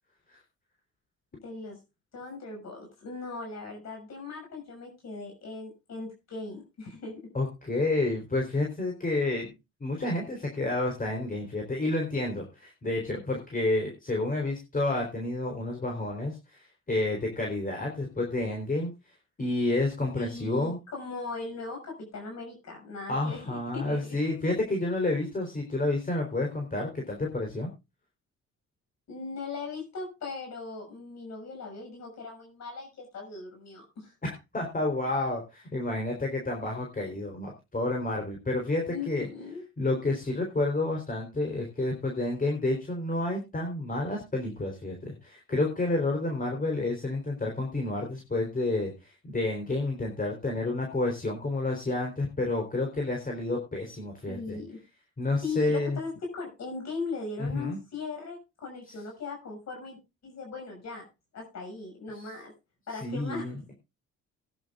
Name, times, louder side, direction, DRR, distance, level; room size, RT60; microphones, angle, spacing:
voice 1, 1.3-1.8 2.1-7.1 20.1-24.0 29.1-34.1 38.9-39.6 54.3-54.8 55.4-60.0 60.2-61.1 61.3-62.5 62.9-63.5, left 4 dB, 60° left, 2 dB, 6.4 m, -39 dB
voice 2, 7.3-9.5 9.8-18.9 19.4-20.8 23.1-27.7 34.2-39.3 39.8-54.6 55.2-56.0 57.4-57.8 58.9-59.0 62.1-62.3 62.9-63.7, left 2 dB, 30° left, 1 dB, 3.9 m, -30 dB
19.5 x 10.5 x 2.5 m, 0.26 s
cardioid pair, 90°, 30 cm